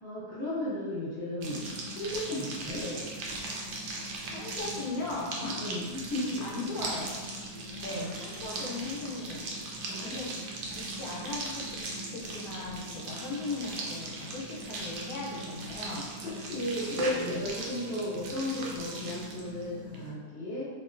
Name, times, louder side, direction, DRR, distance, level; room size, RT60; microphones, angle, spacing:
voice 1, 0.0-2.8 5.6-6.5 7.9-8.1 9.9-10.2 16.2-20.7, left 1 dB, 10° left, -11 dB, 1.1 m, -34 dB
sound 1, 1.4-20.1, right 2 dB, 80° right, 1.2 m, -39 dB
voice 2, 2.7-3.1 4.3-5.7 6.4-7.2 7.8-9.5 9.9-10.3 10.8-16.1 17.1-17.5, left 2 dB, 70° left, -4 dB, 1.2 m, -38 dB
3.0 x 2.9 x 2.4 m, 1.4 s
omnidirectional pair, 1.8 m